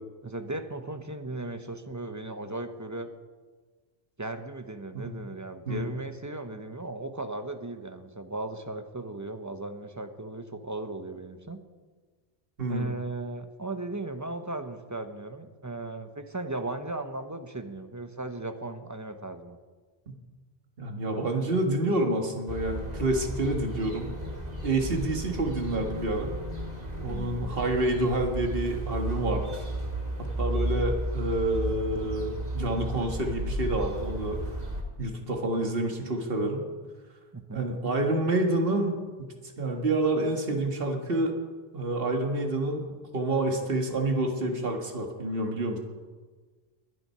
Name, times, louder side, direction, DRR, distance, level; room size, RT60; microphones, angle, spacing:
voice 1, 0.2-3.1 4.2-11.6 12.7-19.6 27.0-27.6 37.3-37.7, right 2 dB, 20° right, 7 dB, 0.9 m, -37 dB
voice 2, 12.6-12.9 20.8-24.1 24.6-26.3 27.0-29.6 30.4-34.4 35.0-36.6 37.5-38.9 39.2-39.3 39.6-41.4 41.7-42.9 43.1-45.8, right 2 dB, 65° right, 2 dB, 1.9 m, -28 dB
sound 1, 22.5-34.8, right 1 dB, 40° right, 2.1 m, -33 dB
21.5 x 7.8 x 5.6 m, 1.4 s
omnidirectional pair, 1.0 m